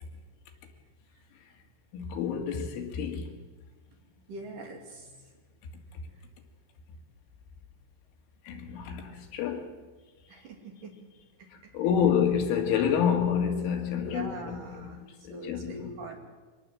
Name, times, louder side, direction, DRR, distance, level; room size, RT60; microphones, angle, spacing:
voice 1, 1.9-3.3 8.5-9.7 11.7-14.3 15.2-15.8, left 8 dB, 85° left, 4.7 m, -28 dB
voice 2, 4.3-5.2 10.3-10.9 11.6-11.7 13.9-16.2, right 2 dB, 50° right, 4.0 m, -42 dB
25.0 x 19.0 x 7.8 m
omnidirectional pair, 5.5 m